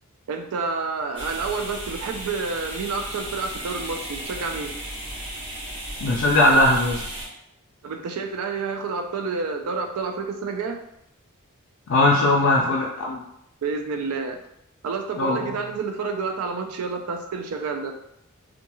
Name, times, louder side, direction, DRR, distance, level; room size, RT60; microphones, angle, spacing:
voice 1, 0.3-4.7 6.6-6.8 7.8-10.8 12.2-12.4 13.6-14.4 14.8-17.9, right 4 dB, 85° right, 5 dB, 0.4 m, -29 dB
sound 1, 1.1-7.2, right 1 dB, 25° right, 1.1 m, -35 dB
voice 2, 6.0-7.0 11.9-13.2 15.2-15.4, left 1 dB, 65° left, -3 dB, 0.4 m, -19 dB
2.4 x 2.2 x 2.9 m, 0.78 s
head